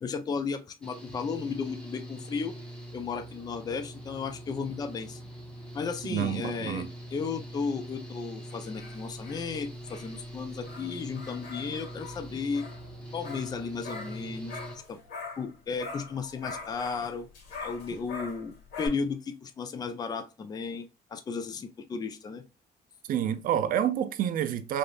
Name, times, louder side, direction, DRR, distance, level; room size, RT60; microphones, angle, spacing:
voice 1, 0.0-2.5 2.9-5.2 5.7-6.9 7.1-12.7 13.1-14.6 14.9-15.0 15.4-17.3 17.6-22.4, left 5 dB, 25° left, 0.4 m, -34 dB
Engine / Mechanical fan, 0.8-14.8, right 1 dB, 5° left, 1.0 m, -43 dB
voice 2, 6.1-6.9 23.1-24.8, right 10 dB, 55° right, 0.5 m, -28 dB
sound 1, 8.5-15.5 15.8-18.9, left 4 dB, 75° left, 1.6 m, -43 dB
3.4 x 2.6 x 2.4 m
cardioid pair, 110°, 17 cm